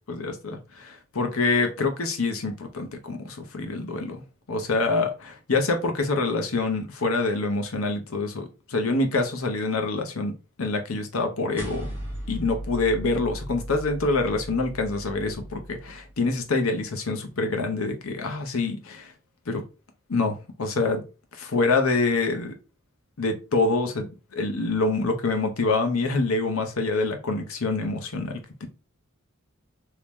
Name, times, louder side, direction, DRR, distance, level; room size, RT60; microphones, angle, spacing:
voice 1, 0.1-4.2 4.5-10.3 10.6-11.9 12.3-19.1 19.5-19.6 20.1-21.0 21.4-22.5 23.2-24.1 24.3-28.7, left 3 dB, 85° left, 0.8 m, -26 dB
sound 1, 11.6-16.2, equal, 10° right, 1.0 m, -37 dB
3.1 x 2.9 x 3.4 m
head